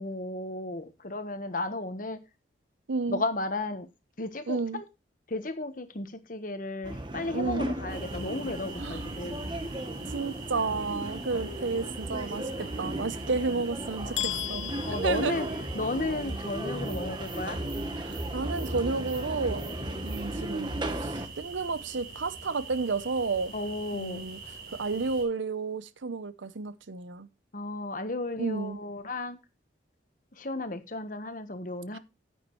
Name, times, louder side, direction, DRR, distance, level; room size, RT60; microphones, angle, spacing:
voice 1, 0.0-2.2 3.1-3.9 4.2-4.8 5.3-9.4 11.3-11.4 14.0-14.4 14.9-15.5 15.7-17.6 23.5-24.3 27.5-29.4 30.4-32.0, left 2 dB, 45° left, 1.3 m, -34 dB
voice 2, 2.9-3.2 4.5-4.8 7.3-7.7 8.8-9.0 10.1-14.7 15.0-15.5 18.0-19.6 20.0-23.5 23.9-24.4 24.7-27.3 28.4-28.8 31.9-32.0, right 4 dB, 80° right, 0.7 m, -31 dB
sound 1, 6.8-21.3, right 1 dB, 25° right, 1.1 m, -35 dB
sound 2, 7.9-25.2, right 4 dB, 55° right, 4.2 m, -44 dB
sound 3, 14.2-16.1, left 14 dB, 75° left, 1.0 m, -36 dB
9.7 x 9.2 x 3.1 m
head